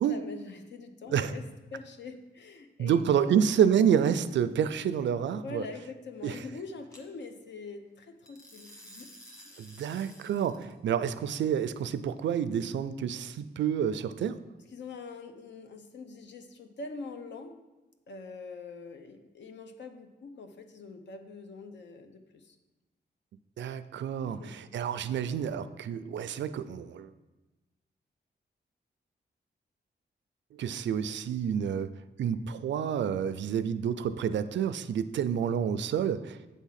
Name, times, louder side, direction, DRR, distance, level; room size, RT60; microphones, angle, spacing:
voice 1, 0.0-1.4 1.7-3.4 5.4-9.1 9.4-9.7 14.7-17.6 18.1-22.6 24.2-24.6, left 4 dB, 80° left, 6 dB, 0.7 m, -44 dB
voice 2, 2.8-5.6 6.2-6.4 9.6-14.4 23.6-27.1 30.6-31.9 32.2-36.4, right 8 dB, 85° right, 13 dB, 0.4 m, -28 dB
sound 1, 3.0-3.4 6.9-7.0 8.3-10.7, equal, 15° left, 1.3 m, -52 dB
8.3 x 3.6 x 5.7 m, 1.1 s
wide cardioid pair, 125°, 18 cm